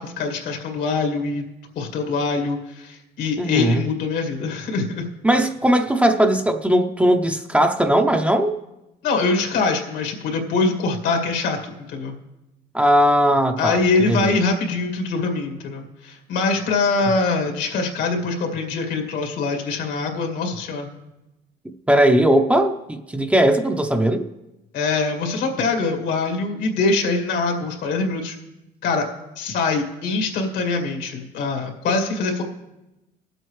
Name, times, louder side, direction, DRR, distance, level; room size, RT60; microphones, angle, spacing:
voice 1, 0.0-1.4 1.8-5.1 9.0-12.2 13.6-20.9 24.7-28.4 28.8-29.1 29.4-32.4, left 3 dB, 80° left, 3 dB, 2.2 m, -23 dB
voice 2, 3.4-3.8 5.2-8.5 12.7-13.8 14.1-14.4 21.9-24.3, right 1 dB, 10° right, 5 dB, 0.6 m, -18 dB
20.5 x 7.8 x 3.2 m, 0.96 s
cardioid pair, 110°, 17 cm